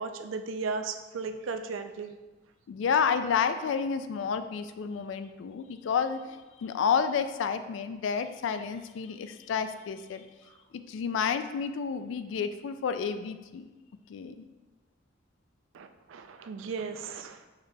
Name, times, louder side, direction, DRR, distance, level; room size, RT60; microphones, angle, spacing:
voice 1, 0.0-2.2 15.7-17.5, right 4 dB, 85° right, 8 dB, 0.4 m, -36 dB
voice 2, 2.7-10.3 10.9-13.7 14.1-14.5, left 6 dB, 75° left, 10 dB, 0.3 m, -30 dB
5.9 x 2.7 x 3.3 m, 1.2 s
head